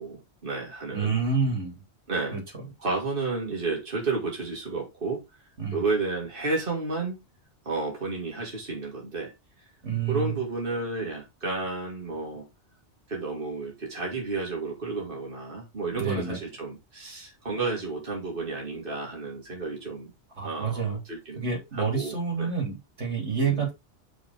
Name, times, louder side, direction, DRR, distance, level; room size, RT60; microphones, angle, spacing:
voice 1, 0.0-1.2 2.1-2.4 2.8-5.2 5.7-7.2 7.7-9.3 10.1-12.4 13.1-20.1 20.4-21.5 21.8-22.5 23.4-23.6, right 3 dB, 50° right, 2.9 m, -31 dB
voice 2, 0.9-1.8 2.3-2.7 5.6-5.8 9.8-10.3 15.9-16.4 20.4-21.0 21.4-23.7, right 5 dB, 90° right, 3.7 m, -28 dB
7.1 x 6.2 x 3.6 m
omnidirectional pair, 1.1 m